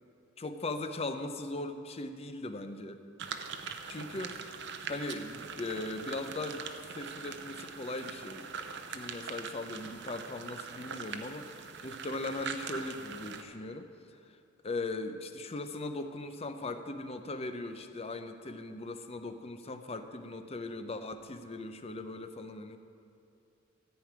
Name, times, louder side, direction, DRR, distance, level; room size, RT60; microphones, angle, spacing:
voice 1, 0.4-3.0 3.8-6.7 6.9-13.9 14.3-14.4 14.6-22.8, left 2 dB, 30° left, 8 dB, 0.6 m, -39 dB
sound 1, 3.2-13.4, right 6 dB, 60° right, 0.7 m, -42 dB
14.0 x 5.0 x 8.9 m, 2.7 s
head